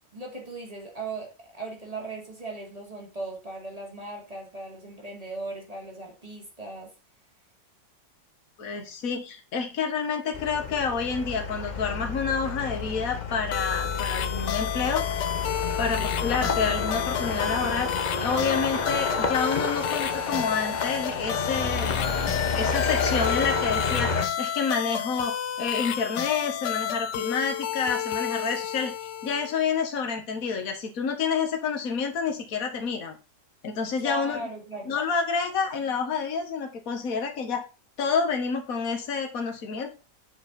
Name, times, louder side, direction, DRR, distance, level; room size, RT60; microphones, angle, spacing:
voice 1, 0.1-6.9 16.0-16.1 29.9-30.1 34.0-35.0, right 2 dB, 20° right, -1 dB, 2.6 m, -38 dB
voice 2, 8.6-15.3 15.8-17.9 18.2-22.0 22.5-33.2 33.6-34.4 34.9-37.6 38.0-39.9, left 5 dB, 50° left, 4 dB, 1.9 m, -29 dB
sound 1, 10.3-24.2, left 5 dB, 35° left, 0.7 m, -30 dB
sound 2, 13.5-29.7, left 9 dB, 75° left, 1.4 m, -31 dB
8.1 x 5.1 x 5.5 m, 0.32 s
omnidirectional pair, 1.9 m